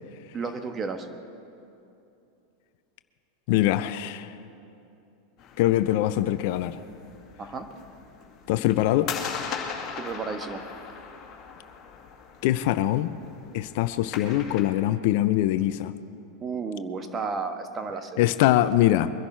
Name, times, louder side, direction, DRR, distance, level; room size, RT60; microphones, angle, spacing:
voice 1, 0.3-1.1 7.4-7.7 10.0-10.6 16.4-18.2, right 4 dB, 25° right, 7 dB, 1.4 m, -32 dB
voice 2, 3.5-4.3 5.6-6.8 8.5-9.2 12.4-13.1 13.5-15.9 18.2-19.1, left 14 dB, 60° left, 13 dB, 0.5 m, -23 dB
sound 1, 5.4-14.6, left 6 dB, 40° left, 2.1 m, -39 dB
23.0 x 11.0 x 4.5 m, 2.7 s
hypercardioid pair, 95°, 0 cm